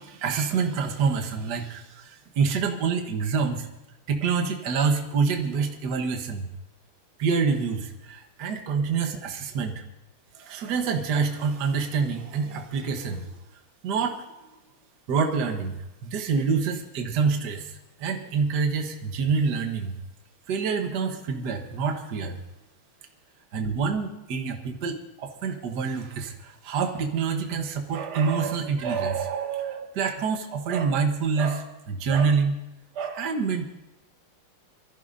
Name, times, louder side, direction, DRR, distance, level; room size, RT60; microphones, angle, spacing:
voice 1, 0.0-3.7 4.1-6.5 7.2-9.8 10.3-13.3 13.8-14.2 15.1-15.7 16.0-20.0 20.5-22.4 23.5-32.6 32.9-33.7, right 5 dB, 55° right, 4 dB, 1.7 m, -27 dB
24.0 x 14.5 x 2.7 m, 0.96 s
omnidirectional pair, 2.3 m